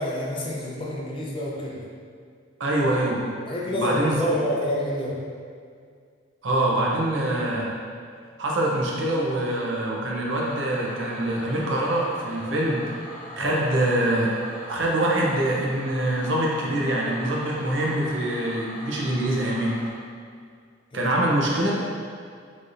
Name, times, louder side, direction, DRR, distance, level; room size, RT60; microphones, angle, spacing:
voice 1, 0.0-1.8 3.5-5.2 13.4-13.7 20.9-21.2, left 1 dB, 25° left, -4 dB, 0.5 m, -28 dB
voice 2, 2.6-3.3 3.7-4.3 6.4-7.7 8.4-12.8 13.4-14.3 14.7-19.7 20.9-21.7, right 1 dB, 75° right, -3 dB, 0.7 m, -24 dB
sound 1, 10.3-19.9, equal, 35° right, 1.3 m, -42 dB
4.0 x 3.2 x 2.6 m, 2.1 s
head